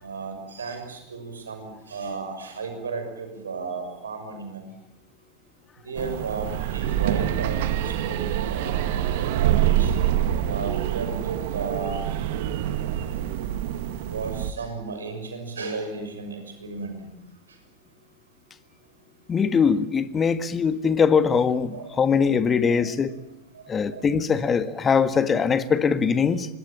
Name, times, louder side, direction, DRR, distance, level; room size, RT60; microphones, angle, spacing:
voice 1, 0.0-4.7 5.9-9.9 10.5-12.0 14.1-17.2 21.7-21.8 22.6-22.8 23.9-24.1, right 4 dB, 70° right, 6.4 m, -34 dB
sound 1, 6.0-14.5, right 11 dB, 50° right, 1.8 m, -26 dB
voice 2, 19.3-23.1 23.7-26.5, left 6 dB, 20° left, 1.7 m, -22 dB
25.5 x 21.0 x 8.8 m
figure-of-eight pair, 90°, 0 cm